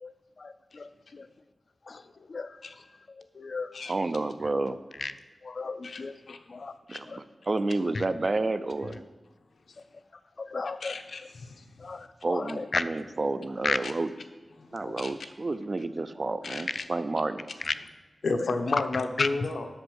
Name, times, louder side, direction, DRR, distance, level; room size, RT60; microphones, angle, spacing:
voice 1, 0.4-1.3 1.9-2.0 2.3-2.6 3.1-3.7 5.0-5.1 5.4-6.1 6.5-6.7 7.1-7.2 7.9-8.0 10.4-11.0 11.8-12.8 13.6-13.8 14.8-15.0 17.6-17.7 18.4-18.8 19.2-19.5, left 4 dB, 55° left, 12 dB, 0.4 m, -33 dB
voice 2, 3.9-4.8 6.9-9.0 12.2-14.1 14.7-17.5, right 2 dB, 40° right, 12 dB, 0.4 m, -30 dB
voice 3, 10.8-11.7 14.6-15.1 16.4-16.8 18.2-19.7, left 3 dB, 80° left, 6 dB, 0.8 m, -32 dB
7.8 x 6.9 x 6.3 m, 1.3 s
wide cardioid pair, 115°, 0 cm